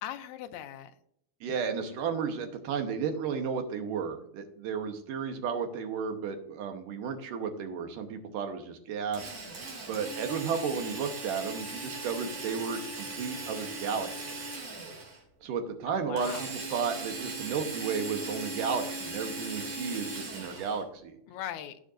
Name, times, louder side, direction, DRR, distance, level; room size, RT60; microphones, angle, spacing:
voice 1, 0.0-0.9 15.9-16.5 21.3-21.8, left 11 dB, 80° left, 8 dB, 1.7 m, -39 dB
voice 2, 1.4-9.3 9.9-14.6 15.4-21.1, right 6 dB, 75° right, 5 dB, 2.5 m, -33 dB
Drill, 9.1-15.2 16.2-20.8, right 3 dB, 50° right, 3.4 m, -39 dB
15.0 x 6.4 x 2.6 m, 0.71 s
omnidirectional pair, 4.0 m